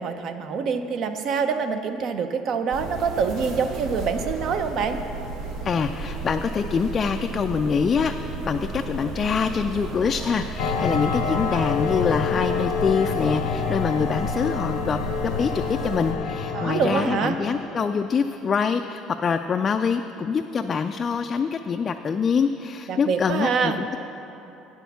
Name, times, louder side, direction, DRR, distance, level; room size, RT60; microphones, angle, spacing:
voice 1, 0.0-5.0 16.5-17.4 22.9-23.8, right 6 dB, 55° right, 8 dB, 0.6 m, -25 dB
sound 1, 2.7-16.1, right 3 dB, 90° right, 1.4 m, -34 dB
voice 2, 5.6-24.0, left 6 dB, 35° left, 5 dB, 0.3 m, -25 dB
sound 2, 10.6-17.6, left 5 dB, 90° left, 0.7 m, -27 dB
9.2 x 6.3 x 6.8 m, 3.0 s
cardioid pair, 120°, 0 cm